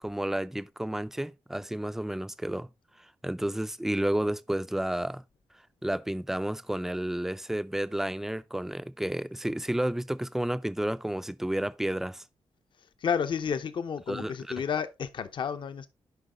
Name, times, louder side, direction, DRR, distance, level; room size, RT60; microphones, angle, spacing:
voice 1, 0.0-2.7 3.0-5.2 5.8-12.2 14.1-14.6, right 1 dB, 5° right, 0.4 m, -31 dB
voice 2, 13.0-15.9, left 7 dB, 50° left, 0.7 m, -31 dB
8.0 x 5.5 x 3.7 m
wide cardioid pair, 160°, 10 cm